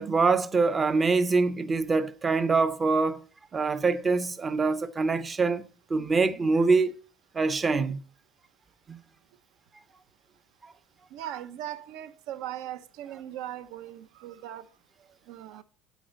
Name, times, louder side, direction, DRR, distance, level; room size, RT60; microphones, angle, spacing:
voice 1, 0.0-3.2 3.5-7.0 7.3-8.0 8.9-9.0, right 4 dB, 20° right, 0.5 m, -24 dB
voice 2, 11.1-14.7 15.3-15.6, right 12 dB, 75° right, 0.7 m, -39 dB
9.1 x 4.1 x 6.2 m
cardioid pair, 155°, 0 cm